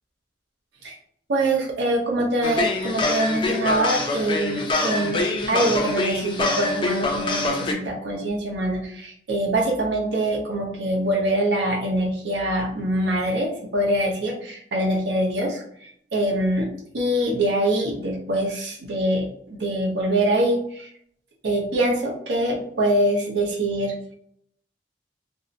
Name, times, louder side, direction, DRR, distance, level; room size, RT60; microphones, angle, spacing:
voice 1, 1.3-20.9 21.4-23.9, right 1 dB, 80° right, 0 dB, 0.6 m, -24 dB
sound 1, 2.4-7.7, left 2 dB, 30° left, 0.3 m, -25 dB
2.7 x 2.0 x 2.5 m, 0.68 s
head